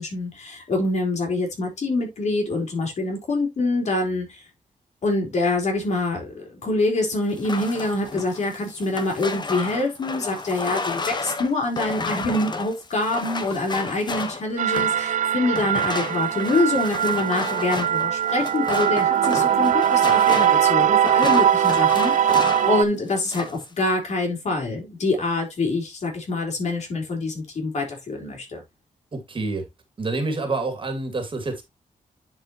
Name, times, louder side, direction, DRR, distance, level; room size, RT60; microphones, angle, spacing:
voice 1, 0.0-4.4 5.0-28.6, left 2 dB, 55° left, 4.0 m, -25 dB
sound 1, 7.3-15.0 15.5-22.8 23.1-23.6, left 3 dB, 35° left, 1.2 m, -32 dB
atmo pad, 14.6-22.8, right 9 dB, 65° right, 0.4 m, -21 dB
voice 2, 29.1-29.7 30.0-31.6, right 3 dB, 40° right, 2.3 m, -27 dB
10.5 x 4.7 x 3.0 m
wide cardioid pair, 125°, 14 cm